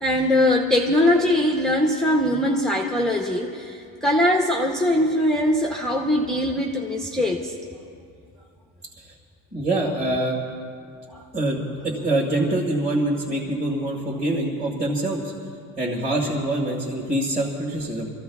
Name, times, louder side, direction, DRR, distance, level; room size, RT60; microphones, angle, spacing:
voice 1, 0.0-7.5 11.1-11.2, left 1 dB, ahead, -1 dB, 0.8 m, -21 dB
voice 2, 9.5-10.4 11.3-15.3 15.8-18.1, right 1 dB, 15° right, -7 dB, 1.9 m, -25 dB
30.0 x 15.0 x 2.4 m, 2.3 s
cardioid pair, 145°, 40 cm